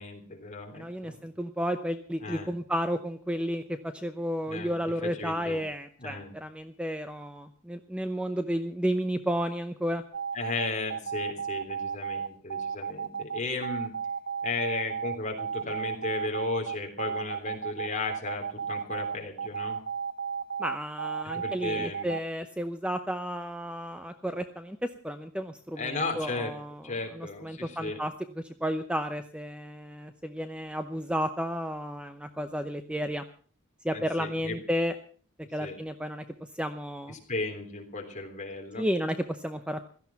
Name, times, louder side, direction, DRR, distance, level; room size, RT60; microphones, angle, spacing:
voice 1, 0.0-1.2 2.2-2.5 4.5-4.8 5.0-5.6 6.0-6.3 10.3-13.9 14.4-19.8 21.3-22.1 25.8-26.5 26.8-28.0 33.9-34.6 35.6-35.8 37.1-38.8, left 3 dB, 35° left, 2 dB, 3.4 m, -35 dB
voice 2, 0.7-10.0 20.6-26.8 27.1-33.2 33.8-34.9 35.5-36.2 36.5-37.1 38.8-39.8, equal, 5° right, 8 dB, 0.7 m, -32 dB
sound 1, 10.1-22.2, right 7 dB, 80° right, 1.0 m, -33 dB
16.5 x 13.5 x 5.8 m, 0.43 s
head